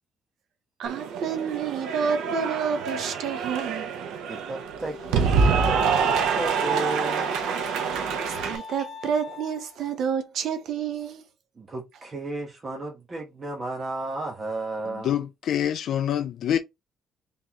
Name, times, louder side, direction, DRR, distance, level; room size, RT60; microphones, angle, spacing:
voice 1, 0.8-3.9 8.3-11.2, right 7 dB, 55° right, 0.8 m, -29 dB
Cheering / Applause, 0.8-8.6, right 5 dB, 85° right, 0.9 m, -26 dB
voice 2, 4.3-7.5 11.6-15.2, right 2 dB, 20° right, 1.1 m, -34 dB
Wind instrument woodwind instrument, 4.5-9.8, left 4 dB, 25° left, 1.0 m, -41 dB
voice 3, 14.9-16.6, left 10 dB, 50° left, 0.3 m, -26 dB
3.9 x 3.7 x 3.0 m
cardioid pair, 170°, 0 cm